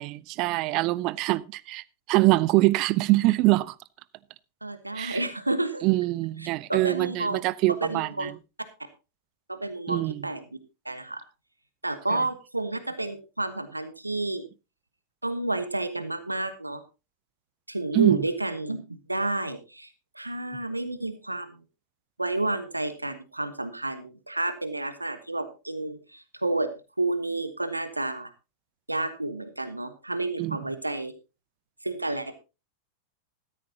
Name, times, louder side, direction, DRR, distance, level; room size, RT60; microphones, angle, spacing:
voice 1, 0.0-3.8 4.9-5.2 5.8-8.3 9.9-10.2 12.1-12.2 17.9-18.3 30.4-30.6, right 19 dB, 40° right, 0.7 m, -24 dB
voice 2, 4.6-5.9 6.7-7.4 7.8-8.3 9.5-10.4 10.8-11.2 11.8-14.4 15.2-16.8 17.7-21.6 22.2-26.7 27.0-28.3 28.9-31.1 31.8-32.3, right 2 dB, 85° right, 1.2 m, -30 dB
14.0 x 13.5 x 2.8 m
figure-of-eight pair, 90°, 0 cm